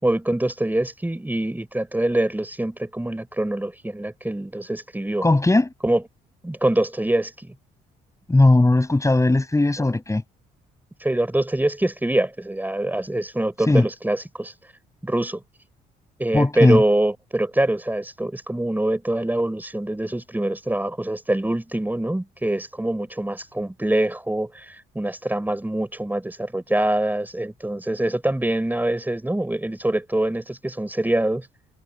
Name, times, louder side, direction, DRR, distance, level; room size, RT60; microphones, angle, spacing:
voice 1, 0.0-5.3 5.8-6.0 6.4-7.5 11.0-14.5 15.0-15.4 16.2-31.5, right 1 dB, 10° right, 5.5 m, -24 dB
voice 2, 5.2-5.7 8.3-10.2 13.7-13.8 16.3-16.8, left 2 dB, 15° left, 6.9 m, -17 dB
supercardioid pair, 65°, 19 cm